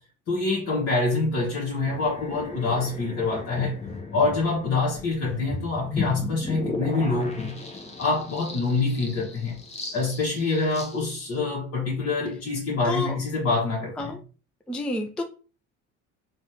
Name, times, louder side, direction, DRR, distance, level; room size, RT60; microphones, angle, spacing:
voice 1, 0.3-3.8 4.1-7.6 8.0-9.6 9.9-14.1, left 3 dB, 45° left, -5 dB, 1.1 m, -26 dB
sound 1, 1.7-11.4, left 3 dB, 20° left, 0.8 m, -36 dB
voice 2, 12.9-13.2 14.0-14.2 14.7-15.2, left 2 dB, 5° left, 3 dB, 0.3 m, -29 dB
3.2 x 2.3 x 2.7 m, 0.35 s
supercardioid pair, 80°, 34 cm